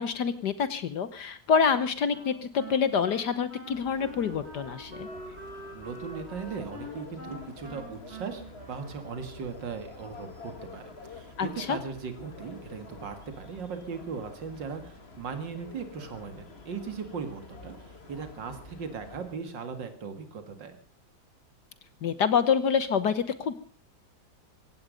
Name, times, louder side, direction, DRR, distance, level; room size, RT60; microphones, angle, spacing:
voice 1, 0.0-5.1 11.4-11.8 22.0-23.5, left 6 dB, 65° left, 13 dB, 1.6 m, -27 dB
Wind instrument woodwind instrument, 2.1-9.5, equal, 35° right, 5.4 m, -45 dB
sound 1, 3.7-19.3, left 3 dB, 35° left, 2.2 m, -48 dB
voice 2, 5.7-20.8, right 5 dB, 75° right, 8 dB, 2.7 m, -38 dB
17.0 x 16.5 x 5.2 m, 0.42 s
omnidirectional pair, 2.0 m